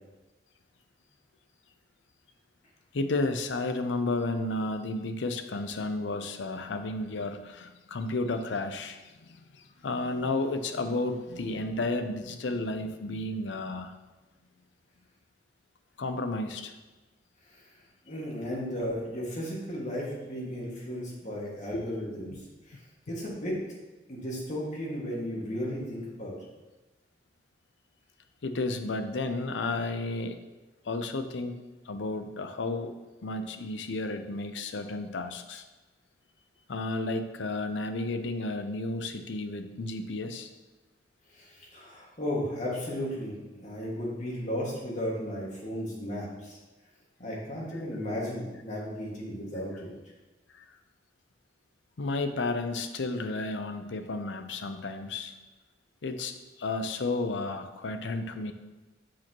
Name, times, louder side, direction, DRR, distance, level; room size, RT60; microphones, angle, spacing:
voice 1, 2.9-13.9 16.0-16.7 21.7-21.8 28.4-30.4 30.8-32.9 33.2-35.6 36.7-40.5 50.5-50.7 52.0-55.3 56.0-58.5, left 2 dB, 85° left, 8 dB, 0.6 m, -32 dB
voice 2, 18.1-22.4 22.7-22.8 23.1-23.6 24.1-26.5 41.3-46.6 47.2-49.9, equal, 40° left, -4 dB, 1.8 m, -35 dB
7.5 x 6.0 x 2.9 m, 1.2 s
head